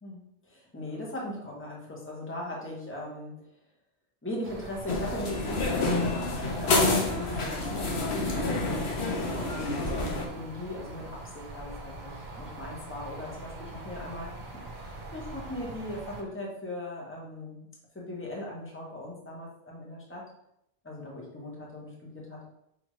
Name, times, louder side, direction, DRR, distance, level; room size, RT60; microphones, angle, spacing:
voice 1, 0.0-3.3 4.2-14.3 14.7-17.7 17.9-20.2 20.8-22.4, left 1 dB, 10° left, -3 dB, 1.0 m, -39 dB
sound 1, 4.4-16.2, right 2 dB, 55° right, 0.8 m, -43 dB
sound 2, 4.9-10.3, left 2 dB, 75° left, 1.1 m, -28 dB
6.0 x 2.6 x 3.1 m, 0.77 s
omnidirectional pair, 1.1 m